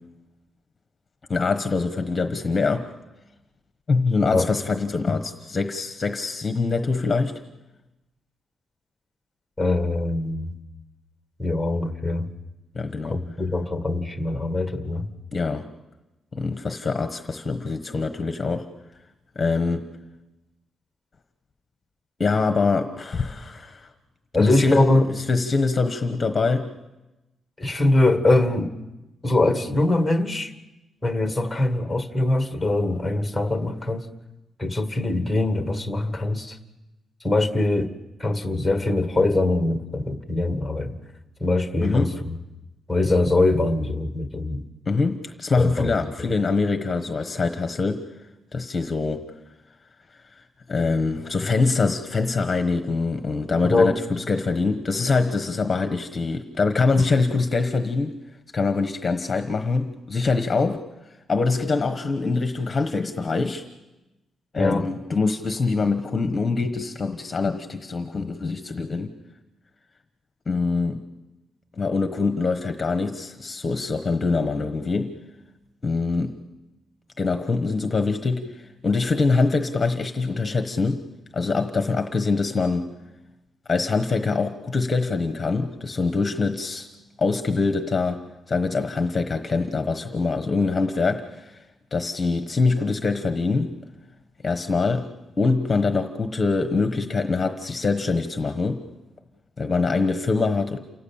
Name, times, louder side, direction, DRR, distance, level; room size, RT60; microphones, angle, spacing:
voice 1, 1.3-2.9 3.9-7.4 12.7-13.2 15.3-15.6 16.3-18.7 19.3-19.8 22.2-23.9 24.3-26.7 41.8-42.1 44.9-48.0 48.5-49.2 50.4-58.2 58.5-60.8 61.3-63.6 64.5-69.1 70.5-71.0 71.8-75.2 75.8-76.4 77.2-81.0 81.3-82.9 83.7-86.9 87.2-91.6 91.9-93.7 94.4-95.1 95.4-98.8 99.6-100.8, left 4 dB, 25° left, 8 dB, 1.2 m, -24 dB
voice 2, 9.6-10.5 11.4-12.3 13.0-15.1 24.3-25.1 27.6-28.7 29.2-30.5 31.0-34.1 34.6-36.6 37.2-37.9 38.2-41.0 41.4-42.1 42.9-44.6 45.6-45.9 53.6-54.0 64.6-64.9, left 2 dB, ahead, 8 dB, 1.7 m, -22 dB
28.5 x 18.0 x 8.7 m, 1.0 s
wide cardioid pair, 160°, 0 cm